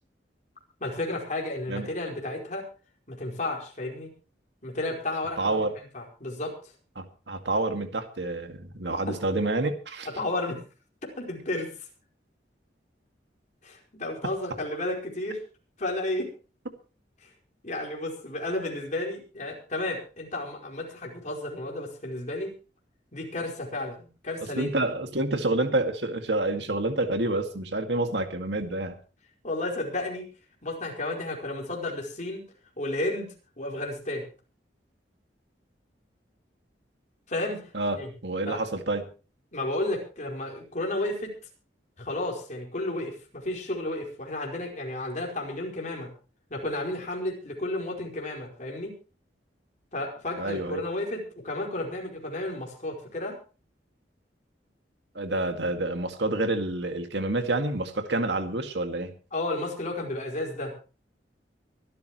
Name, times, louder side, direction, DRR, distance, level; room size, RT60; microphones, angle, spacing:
voice 1, 0.8-2.7 3.1-4.1 4.6-5.6 5.9-6.5 8.9-9.2 10.1-10.6 11.2-11.7 13.6-15.4 15.8-16.3 17.2-17.3 17.6-22.5 23.1-24.7 29.4-30.3 30.6-32.4 32.8-34.2 37.3-38.1 38.5-38.6 39.5-41.3 42.0-46.1 46.5-48.9 49.9-53.4 59.3-60.7, left 2 dB, 45° left, 0 dB, 4.8 m, -32 dB
voice 2, 5.4-5.7 7.0-10.1 24.6-28.9 37.7-39.1 50.4-50.8 55.2-59.1, right 2 dB, 70° right, 6 dB, 2.1 m, -28 dB
24.5 x 12.5 x 3.1 m, 0.36 s
head